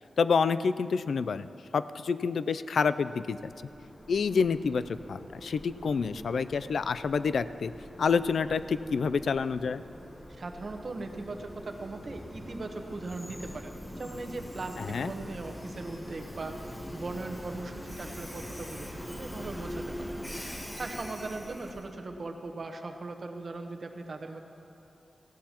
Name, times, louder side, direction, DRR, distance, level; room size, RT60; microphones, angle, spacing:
voice 1, 0.2-3.5 4.1-7.7 8.0-9.8 14.8-15.1, left 5 dB, 70° left, 13 dB, 0.3 m, -28 dB
Train, 3.3-22.0, equal, 15° left, 1.0 m, -43 dB
voice 2, 10.3-20.1 20.8-24.4, right 3 dB, 40° right, 4 dB, 0.9 m, -39 dB
18.5 x 15.5 x 2.9 m, 2.8 s
wide cardioid pair, 175°, 0 cm